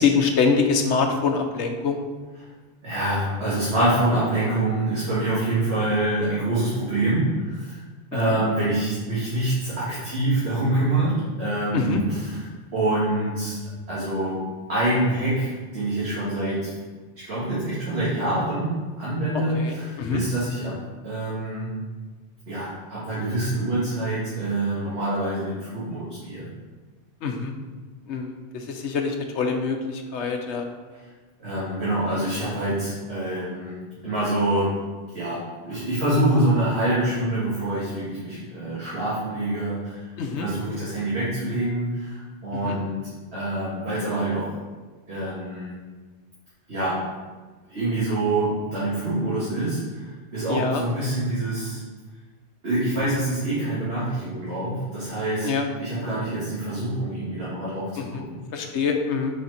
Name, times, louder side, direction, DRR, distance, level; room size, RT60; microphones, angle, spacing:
voice 1, 0.0-2.0 8.1-8.4 11.7-12.0 19.3-20.2 27.2-27.5 28.1-30.7 40.2-40.5 42.6-42.8 50.5-50.8 55.4-55.7 58.0-58.2 58.5-59.4, left 5 dB, 85° left, 4 dB, 1.0 m, -25 dB
voice 2, 2.8-7.8 8.1-12.4 12.7-13.6 13.9-14.4 14.7-16.7 17.2-20.8 21.0-21.7 22.5-26.5 30.9-31.1 31.4-34.8 35.1-44.5 45.1-45.7 46.7-47.1 47.7-51.8 52.6-55.5 55.8-58.4, right 1 dB, 70° right, -10 dB, 1.9 m, -26 dB
5.7 x 4.3 x 4.0 m, 1.3 s
omnidirectional pair, 1.1 m